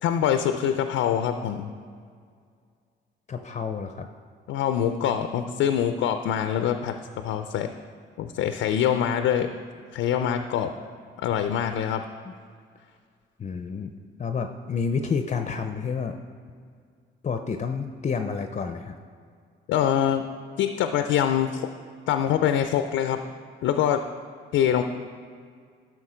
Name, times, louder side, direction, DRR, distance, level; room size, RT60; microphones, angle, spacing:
voice 1, 0.0-1.7 4.5-6.9 7.2-7.7 8.2-9.5 9.9-10.7 11.2-12.0 19.7-20.2 20.6-21.7 22.1-23.2 23.6-24.0 24.5-24.8, left 9 dB, 85° left, 8 dB, 0.5 m, -24 dB
voice 2, 3.3-4.1 12.2-12.3 13.4-13.9 14.2-16.2 17.2-19.0, left 5 dB, 35° left, 6 dB, 0.5 m, -29 dB
11.5 x 6.3 x 5.0 m, 2.1 s
cardioid pair, 90°, 20 cm